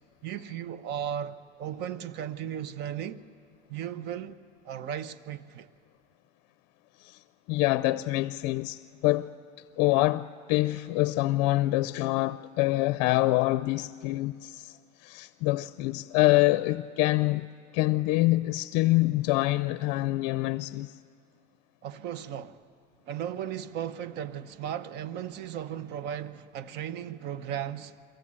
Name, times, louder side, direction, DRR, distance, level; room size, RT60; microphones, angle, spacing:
voice 1, 0.2-3.2 3.7-5.7 21.8-22.6 23.1-28.0, right 9 dB, 55° right, 0.9 m, -36 dB
voice 2, 7.0-9.3 9.8-17.5 17.7-21.0, left 19 dB, 70° left, 0.5 m, -26 dB
23.0 x 15.5 x 8.7 m
supercardioid pair, 120°, 21 cm